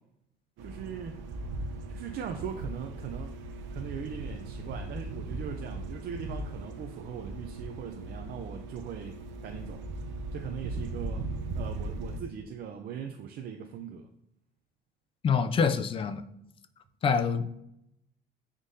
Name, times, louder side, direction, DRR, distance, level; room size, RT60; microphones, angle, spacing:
voice 1, 0.6-1.2 1.9-3.3 3.7-9.2 9.4-9.9 10.3-11.3 11.5-14.1, right 7 dB, 50° right, 4 dB, 0.5 m, -40 dB
sound 1, 0.6-12.2, right 2 dB, 70° right, 0.8 m, -38 dB
voice 2, 15.2-16.2 17.0-17.5, left 6 dB, 30° left, 10 dB, 0.4 m, -26 dB
9.7 x 3.7 x 2.7 m, 0.80 s
cardioid pair, 165°, 20 cm